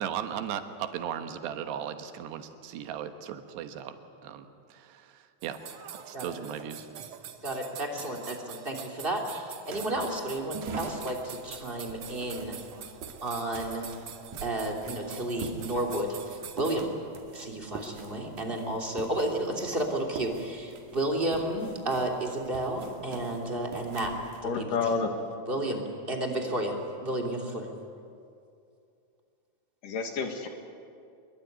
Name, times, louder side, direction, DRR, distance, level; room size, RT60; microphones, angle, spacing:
voice 1, 0.0-4.0 4.2-5.6 6.1-6.9, right 9 dB, 90° right, 8 dB, 3.5 m, -37 dB
sound 1, 5.4-16.8, right 9 dB, 70° right, 1.5 m, -45 dB
voice 2, 7.4-12.6 13.2-13.9 14.4-16.9 17.3-24.1 24.4-24.7 25.5-27.7, right 1 dB, 15° right, 1 dB, 2.5 m, -32 dB
sound 2, 9.7-24.4, right 4 dB, 50° right, 3.2 m, -44 dB
voice 3, 24.4-25.3 29.8-30.5, left 4 dB, 60° left, 5 dB, 3.2 m, -29 dB
25.5 x 22.0 x 9.5 m, 2.4 s
omnidirectional pair, 4.7 m